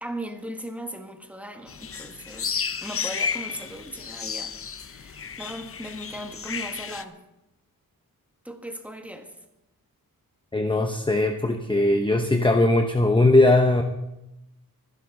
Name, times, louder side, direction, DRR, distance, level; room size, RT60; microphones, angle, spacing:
voice 1, 0.0-2.5 2.8-4.5 4.8-7.2 8.4-9.3, right 1 dB, 5° right, 5 dB, 1.7 m, -37 dB
sound 1, 1.7-7.0, left 6 dB, 40° left, 0.7 m, -33 dB
voice 2, 10.5-13.8, left 2 dB, 15° left, 5 dB, 0.9 m, -20 dB
24.0 x 10.5 x 3.9 m, 0.91 s
wide cardioid pair, 100°, 36 cm